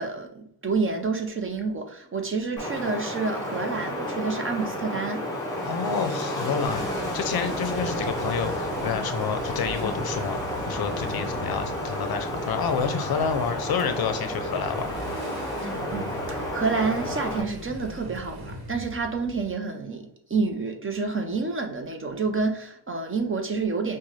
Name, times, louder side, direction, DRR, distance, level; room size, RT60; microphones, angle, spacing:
voice 1, 0.0-5.2 15.6-24.0, right 4 dB, 30° right, 0.6 m, -29 dB
Wind, 2.6-17.4, equal, 10° left, 1.6 m, -31 dB
voice 2, 5.6-10.4 10.7-15.0, left 6 dB, 55° left, 0.6 m, -29 dB
Motorcycle, 6.6-19.5, left 1 dB, 55° right, 1.2 m, -41 dB
5.3 x 2.2 x 3.1 m
cardioid pair, 100°, 43 cm